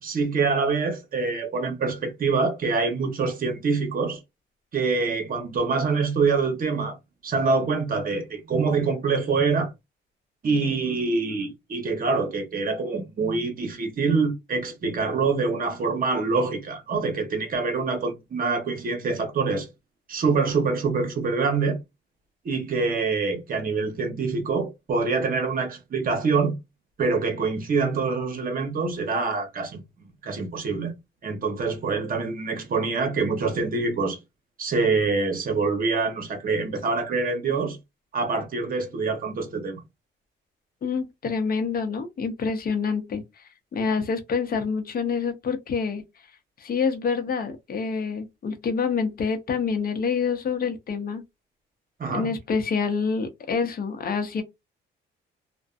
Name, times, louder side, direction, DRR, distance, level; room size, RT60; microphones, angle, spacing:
voice 1, 0.0-4.2 4.7-7.0 7.2-9.7 10.4-19.7 20.1-21.8 22.4-26.6 27.0-29.8 30.2-30.9 31.2-34.2 34.6-37.8 38.1-39.8 52.0-52.3, right 4 dB, 45° right, 0.9 m, -25 dB
voice 2, 40.8-43.4 43.7-46.0 46.6-51.2 52.1-54.4, left 5 dB, 50° left, 0.8 m, -27 dB
2.5 x 2.2 x 2.4 m
cardioid pair, 90°, 20 cm